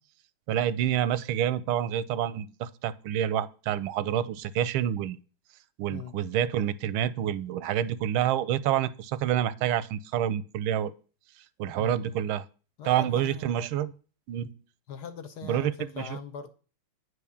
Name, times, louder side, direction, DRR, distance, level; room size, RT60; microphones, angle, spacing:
voice 1, 0.5-5.2 5.8-10.9 11.6-12.4 12.8-13.9 14.3-14.5 15.4-16.2, right 10 dB, 90° right, 1.5 m, -28 dB
voice 2, 11.8-12.3 12.8-13.5 14.9-16.5, left 6 dB, 65° left, 1.1 m, -41 dB
9.3 x 4.9 x 6.9 m
omnidirectional pair, 2.2 m